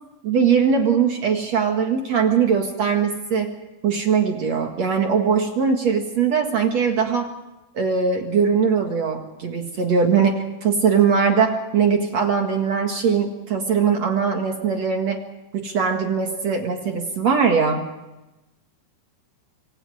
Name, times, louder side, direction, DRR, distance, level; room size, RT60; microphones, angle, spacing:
voice 1, 0.2-3.6 3.8-7.3 7.7-15.2 15.5-17.9, right 6 dB, 60° right, 3 dB, 1.7 m, -21 dB
26.5 x 24.5 x 4.9 m, 1.0 s
omnidirectional pair, 5.8 m